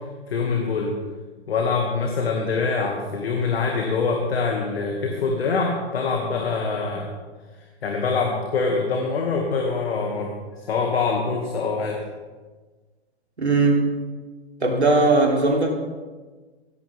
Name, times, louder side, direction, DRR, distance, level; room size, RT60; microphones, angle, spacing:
voice 1, 0.3-0.9 1.5-7.1 7.8-10.3 10.7-12.0, left 4 dB, 70° left, 1 dB, 2.2 m, -24 dB
voice 2, 13.4-13.8 14.6-15.7, right 3 dB, 90° right, 0 dB, 3.4 m, -18 dB
17.0 x 15.5 x 3.6 m, 1.3 s
figure-of-eight pair, 115°, 32 cm